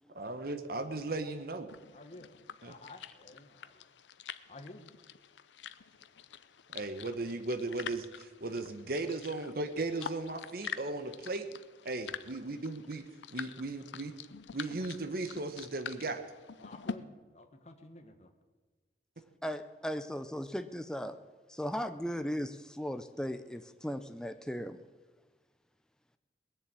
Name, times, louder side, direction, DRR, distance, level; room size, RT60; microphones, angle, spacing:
voice 1, 0.1-1.7 2.6-2.8 6.7-11.5 11.8-13.0 13.3-14.1 14.5-16.2, right 2 dB, 55° right, 8 dB, 1.0 m, -36 dB
sound 1, 1.7-16.9, left 7 dB, 75° left, 0.6 m, -46 dB
voice 2, 1.9-3.9 4.5-4.9 16.6-18.3, left 2 dB, 35° left, 5 dB, 1.4 m, -52 dB
voice 3, 19.4-21.2 21.5-24.8, equal, 5° left, 9 dB, 0.5 m, -37 dB
20.0 x 7.0 x 8.7 m, 1.3 s
head